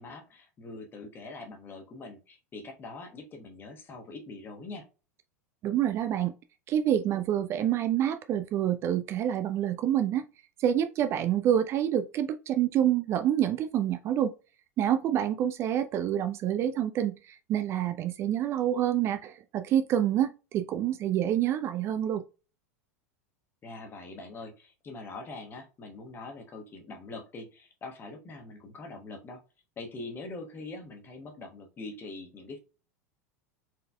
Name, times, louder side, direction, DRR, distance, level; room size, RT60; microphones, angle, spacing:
voice 1, 0.0-4.8 23.6-29.4 29.8-32.6, left 3 dB, 25° left, 1.2 m, -43 dB
voice 2, 5.6-6.3 6.7-10.2 10.6-14.3 14.8-22.2, right 10 dB, 30° right, 0.3 m, -27 dB
4.5 x 3.9 x 2.2 m
figure-of-eight pair, 85°, 9 cm